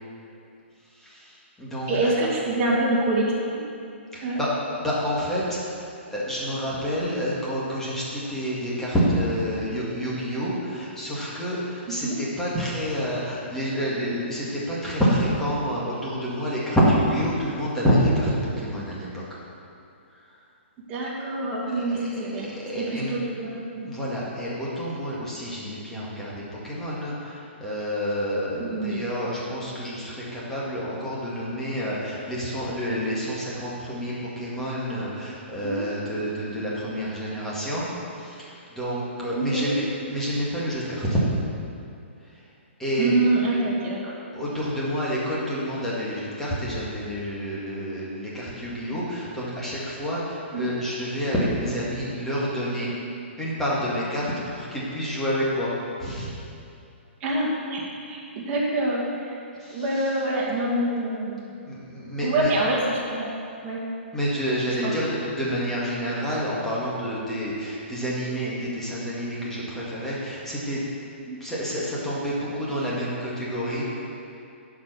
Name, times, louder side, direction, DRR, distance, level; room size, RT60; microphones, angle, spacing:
voice 1, 1.0-2.1 4.1-19.2 21.7-23.1 23.7-41.2 42.8-43.1 44.3-52.9 53.4-55.7 56.0-56.3 59.6-60.1 61.7-62.5 64.1-70.8 71.4-74.1, equal, 5° left, -7 dB, 2.0 m, -28 dB
voice 2, 1.9-3.2 3.5-3.6 4.2-4.4 11.9-12.2 20.9-22.5 22.8-23.9 28.6-29.0 35.6-35.9 39.3-39.8 43.0-44.0 50.5-50.6 57.2-59.4 59.7-61.5 62.2-63.2 63.6-63.8 64.8-64.9 71.3-71.4, right 2 dB, 25° right, -5 dB, 2.3 m, -26 dB
10.5 x 5.0 x 6.8 m, 2.6 s
hypercardioid pair, 150°, 7 cm